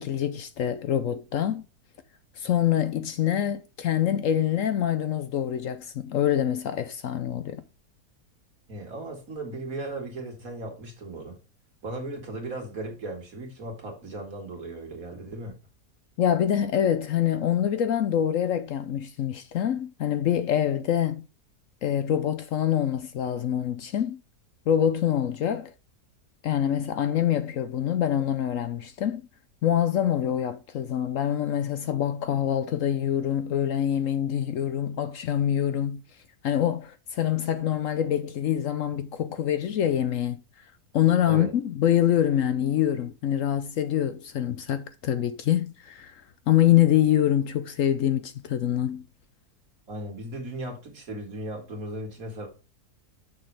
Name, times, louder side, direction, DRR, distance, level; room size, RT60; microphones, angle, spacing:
voice 1, 0.0-1.6 2.4-7.6 16.2-21.3 21.8-24.2 24.7-25.7 26.4-29.2 29.6-36.0 36.4-40.4 40.9-49.0, left 10 dB, 65° left, 0.9 m, -25 dB
voice 2, 8.7-11.4 11.8-15.5 41.3-41.5 49.9-52.5, right 2 dB, 60° right, 2.6 m, -36 dB
6.8 x 6.4 x 3.3 m
omnidirectional pair, 1.6 m